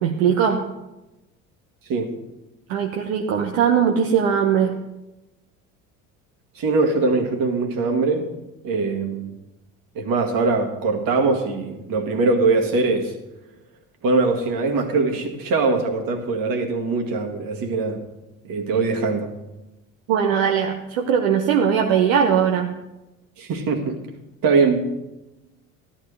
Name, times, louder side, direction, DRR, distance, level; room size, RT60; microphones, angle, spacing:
voice 1, 0.0-0.6 2.7-4.7 20.1-22.7, right 7 dB, 80° right, 1.0 m, -20 dB
voice 2, 1.8-2.2 6.5-8.3 8.6-9.3 9.9-13.2 14.0-18.0 18.4-19.3 23.4-24.0 24.4-24.9, right 3 dB, 60° right, 2.0 m, -22 dB
13.5 x 11.5 x 3.4 m
hypercardioid pair, 70°, 39 cm